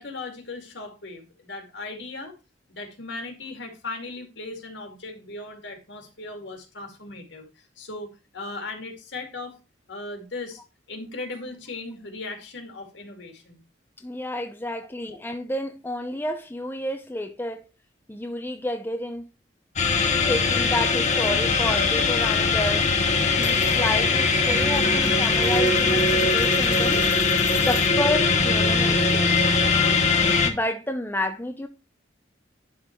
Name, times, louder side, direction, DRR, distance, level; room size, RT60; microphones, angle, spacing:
voice 1, 0.0-2.3 2.8-8.1 8.3-9.6 9.9-10.6 10.9-13.6 14.8-14.9, left 3 dB, 70° left, 2.3 m, -37 dB
voice 2, 14.0-17.6 18.1-19.3 20.3-22.9 23.4-27.1 27.6-29.4 30.4-31.7, left 1 dB, 10° left, 0.6 m, -30 dB
sound 1, 19.8-30.5, left 4 dB, 40° left, 1.1 m, -21 dB
Coin (dropping), 20.6-21.7 22.0-22.5 22.8-28.1 28.4-30.1, left 4 dB, 85° left, 3.1 m, -39 dB
11.0 x 4.0 x 4.4 m
head